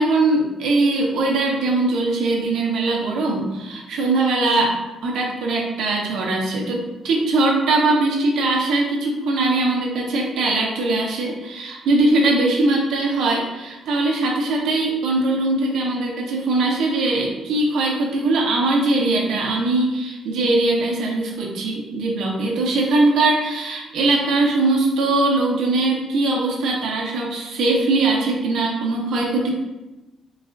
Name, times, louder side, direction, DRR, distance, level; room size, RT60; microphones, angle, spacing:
voice 1, 0.0-4.8 5.0-29.5, right 2 dB, 80° right, -2 dB, 0.7 m, -21 dB
3.9 x 2.4 x 2.4 m, 1.0 s
cardioid pair, 90°, 0 cm